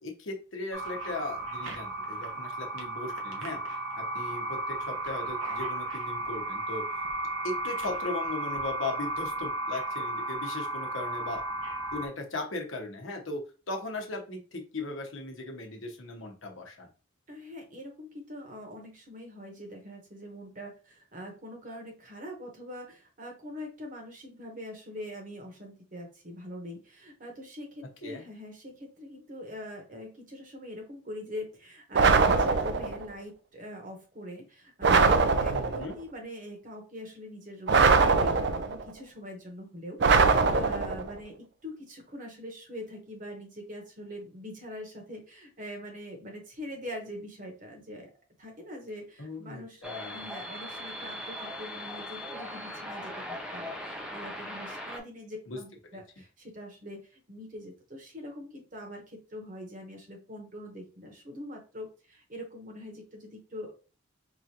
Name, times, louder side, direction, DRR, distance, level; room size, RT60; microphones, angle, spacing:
voice 1, 0.0-3.6 4.0-6.8 7.4-11.4 11.9-16.9 28.0-28.2 35.5-35.9 49.2-50.2 55.5-55.6, left 2 dB, 75° left, 2 dB, 0.9 m, -38 dB
sound 1, 0.7-12.1, right 2 dB, 80° right, 0.9 m, -34 dB
voice 2, 17.3-41.3 41.6-48.1 48.4-63.7, left 1 dB, 40° right, 2 dB, 1.0 m, -43 dB
sound 2, 31.9-33.0 34.8-35.9 37.7-38.8 40.0-41.1, right 4 dB, 55° right, 0.4 m, -22 dB
sound 3, 49.8-55.0, left 1 dB, 5° right, 0.5 m, -39 dB
4.8 x 2.5 x 2.8 m, 0.35 s
head